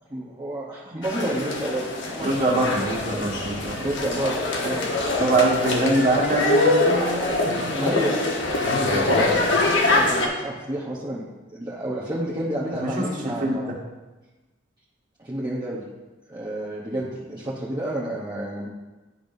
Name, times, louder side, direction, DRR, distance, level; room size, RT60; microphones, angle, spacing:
voice 1, 0.1-2.6 3.8-4.8 7.2-7.4 7.8-8.2 8.8-11.2 11.5-13.7 15.2-15.8 16.3-18.7, right 1 dB, 20° right, -7 dB, 0.9 m, -30 dB
sound 1, 1.0-10.3, left 2 dB, 65° left, 1.1 m, -24 dB
voice 2, 2.2-3.7 5.2-7.2 7.5-8.0 12.7-13.5, right 2 dB, 45° right, -3 dB, 1.6 m, -23 dB
10.5 x 5.3 x 2.7 m, 1.2 s
head